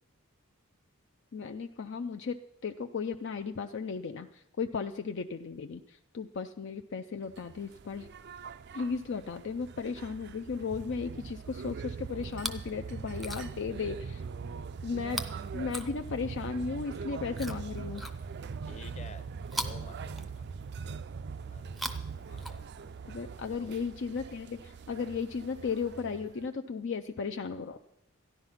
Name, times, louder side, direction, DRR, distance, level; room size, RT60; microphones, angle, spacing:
voice 1, 1.3-8.1 8.7-14.2 14.8-15.2 15.5-18.0 23.0-27.8, left 5 dB, 55° left, 6 dB, 0.4 m, -35 dB
sound 1, 7.3-26.5, right 5 dB, 50° right, 0.4 m, -42 dB
Chewing mastication, 12.2-12.7 13.1-13.7 15.1-16.4 17.3-18.6 19.5-20.7 21.6-23.0 23.9-24.0, equal, ahead, 0.5 m, -41 dB
voice 2, 18.7-19.3 19.5-20.7 21.5-22.7 23.5-23.8, left 2 dB, 30° left, 9 dB, 0.9 m, -51 dB
13.5 x 10.5 x 5.7 m, 0.83 s
head